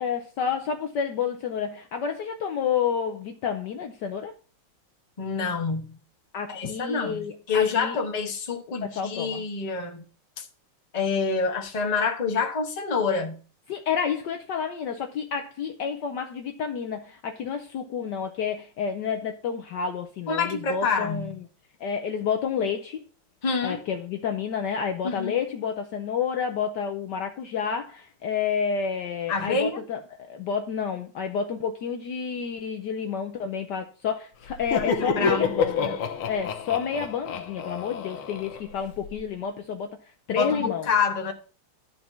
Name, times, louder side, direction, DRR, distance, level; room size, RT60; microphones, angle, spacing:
voice 1, 0.0-4.3 6.3-8.0 8.9-9.4 13.7-21.4 21.8-23.0 23.6-36.0 36.3-39.9 40.3-40.9, left 7 dB, 65° left, 1.2 m, -30 dB
voice 2, 5.2-6.0 6.5-10.0 10.4-10.5 10.9-13.4 20.3-21.4 23.4-23.8 25.0-25.3 29.3-29.8 34.7-35.5 35.8-36.0 40.3-41.3, left 4 dB, 25° left, 1.1 m, -27 dB
Laughter, 34.5-39.1, left 5 dB, 90° left, 1.8 m, -29 dB
12.0 x 4.1 x 5.8 m
omnidirectional pair, 2.3 m